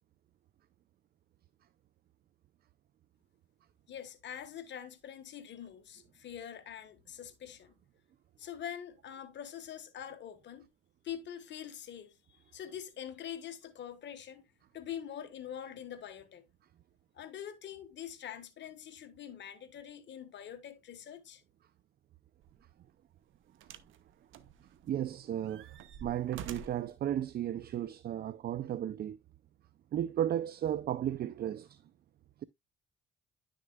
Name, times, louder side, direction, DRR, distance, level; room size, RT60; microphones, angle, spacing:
voice 1, 3.9-7.7 8.4-10.7 11.0-14.4 14.7-16.4 17.1-21.4, left 9 dB, 65° left, 1.4 m, -44 dB
sound 1, 22.4-22.6 23.6-24.0 24.3-25.0 25.4-26.9 27.8-27.9, right 7 dB, 80° right, 0.9 m, -47 dB
voice 2, 24.9-29.2 29.9-31.8, right 11 dB, 50° right, 0.4 m, -34 dB
10.5 x 6.6 x 2.2 m
cardioid pair, 90°, 20 cm